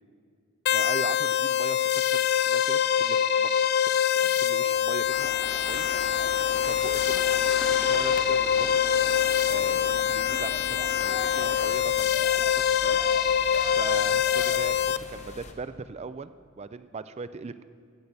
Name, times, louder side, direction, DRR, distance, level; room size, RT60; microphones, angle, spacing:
sound 1, 0.7-15.0, left 9 dB, 45° left, 0.3 m, -24 dB
voice 1, 0.7-3.5 3.8-5.9 6.7-7.2 7.8-8.7 9.5-13.0 13.8-14.7 15.1-17.6, right 4 dB, 30° right, 13 dB, 0.3 m, -39 dB
sound 2, 4.4-15.5, left 2 dB, 30° left, 0.9 m, -42 dB
sound 3, 5.1-11.7, equal, 5° left, 0.9 m, -41 dB
14.5 x 6.8 x 8.0 m, 2.3 s
head